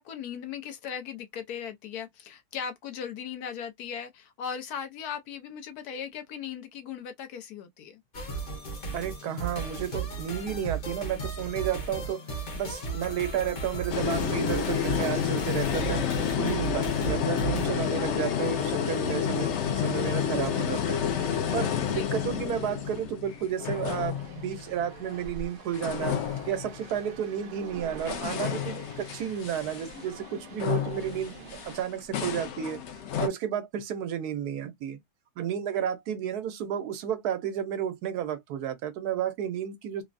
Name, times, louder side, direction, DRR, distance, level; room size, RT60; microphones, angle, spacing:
voice 1, 0.0-8.0 16.3-16.6 21.9-22.1, left 8 dB, 80° left, 1.2 m, -38 dB
sound 1, 8.1-17.7, right 3 dB, 40° left, 0.9 m, -35 dB
voice 2, 8.9-12.2 12.5-26.1 26.5-31.3 31.6-32.8 33.2-35.0 35.4-40.0, right 9 dB, 90° right, 1.2 m, -32 dB
sound 2, 13.9-25.4 25.7-27.1 27.7-33.3, left 8 dB, 65° left, 0.7 m, -30 dB
sound 3, 23.2-31.8, right 6 dB, 60° right, 0.5 m, -48 dB
3.4 x 2.0 x 2.5 m
omnidirectional pair, 1.6 m